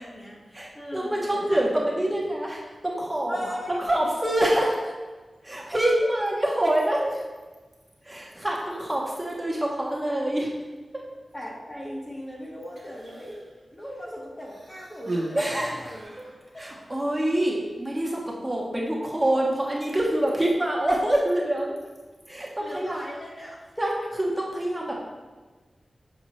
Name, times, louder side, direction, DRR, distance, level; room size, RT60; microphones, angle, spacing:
voice 1, 0.0-1.7 1.9-2.0 3.3-4.0 11.3-16.6 22.6-23.7, equal, 35° left, -3 dB, 1.5 m, -39 dB
voice 2, 0.5-4.9 5.4-7.2 8.0-10.5 10.9-11.0 15.3-15.9 16.6-21.7 22.3-23.0 23.8-25.0, right 1 dB, 15° right, -3 dB, 0.9 m, -26 dB
Human voice, 12.6-13.5 14.4-16.4 17.3-17.4, right 1 dB, 50° right, 1.2 m, -36 dB
6.2 x 4.8 x 3.2 m, 1.3 s
wide cardioid pair, 70°, 0 cm